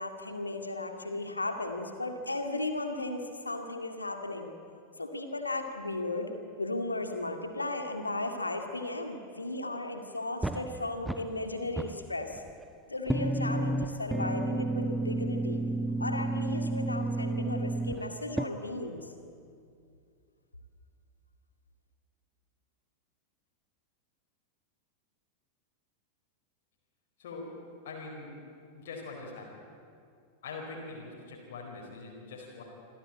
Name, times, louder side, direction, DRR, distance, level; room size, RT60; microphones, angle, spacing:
voice 1, 0.0-4.5 5.0-6.3 6.6-12.4 12.9-15.6 16.0-19.1, left 2 dB, 80° left, 5 dB, 2.2 m, -35 dB
sound 1, 10.4-11.5 11.8-12.6 13.1-18.4, right 2 dB, 5° right, 0.7 m, -31 dB
voice 2, 27.2-27.5 27.8-28.3 28.7-29.5 30.4-32.6, left 3 dB, 55° left, -2 dB, 4.6 m, -43 dB
26.0 x 15.0 x 8.8 m, 2.4 s
figure-of-eight pair, 90°, 0 cm